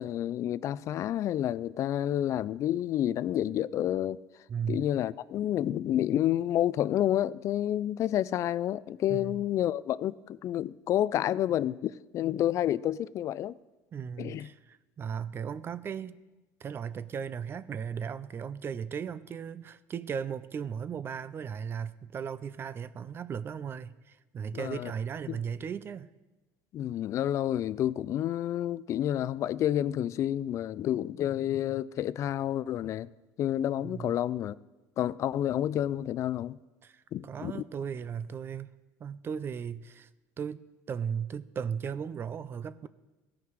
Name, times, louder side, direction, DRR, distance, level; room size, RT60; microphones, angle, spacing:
voice 1, 0.0-4.2 4.7-13.6 14.2-14.5 24.5-24.9 25.3-25.4 26.7-33.1 33.4-34.5 35.0-36.6 37.1-37.6, left 11 dB, 45° left, 0.3 m, -29 dB
voice 2, 4.5-4.9 9.1-9.5 13.9-16.2 16.6-26.1 33.8-34.2 36.8-38.7 39.0-40.1 40.4-42.9, right 7 dB, 35° right, 0.5 m, -36 dB
16.0 x 5.8 x 4.7 m
supercardioid pair, 110°, 7 cm